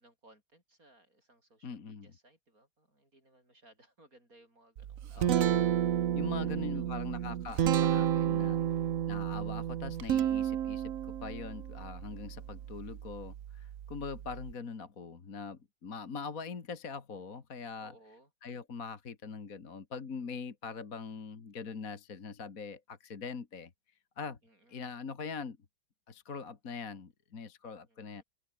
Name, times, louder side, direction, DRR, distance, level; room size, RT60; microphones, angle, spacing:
voice 1, 0.0-7.1 8.6-9.0 17.8-18.3 24.4-24.9 27.8-28.2, right 1 dB, 40° right, 8.3 m, -63 dB
voice 2, 1.6-2.1 5.1-5.8 6.1-8.6 9.1-17.9 18.4-23.7 24.2-24.4 24.7-25.6 26.1-28.2, left 5 dB, 40° left, 2.2 m, -42 dB
Guitar, 4.8-14.5, right 10 dB, 60° right, 0.9 m, -32 dB
open air
omnidirectional pair, 2.3 m